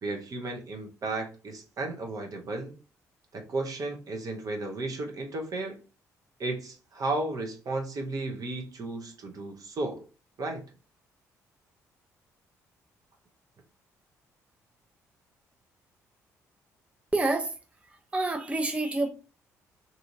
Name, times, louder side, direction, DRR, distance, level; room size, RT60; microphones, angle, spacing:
voice 1, 0.0-2.7 3.3-5.8 6.4-10.0 10.4-10.6, right 2 dB, 45° right, 0.8 m, -34 dB
voice 2, 17.1-17.5 18.1-19.1, right 2 dB, 15° right, 0.6 m, -27 dB
2.7 x 2.5 x 2.7 m
figure-of-eight pair, 45°, 8 cm